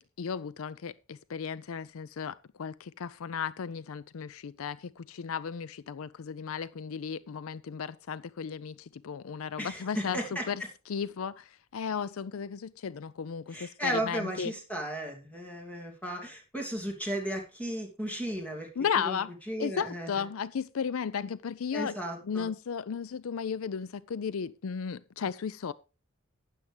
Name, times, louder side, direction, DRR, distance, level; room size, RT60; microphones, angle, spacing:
voice 1, 0.0-8.7 9.0-10.2 10.5-10.6 10.9-11.4 11.7-14.5 18.8-19.3 19.6-21.9 22.2-25.7, left 6 dB, 75° left, 0.4 m, -35 dB
voice 2, 9.6-10.7 13.5-18.7 18.9-19.2 19.5-20.2 21.7-22.5, right 1 dB, 5° left, 2.6 m, -35 dB
12.5 x 9.2 x 3.4 m
head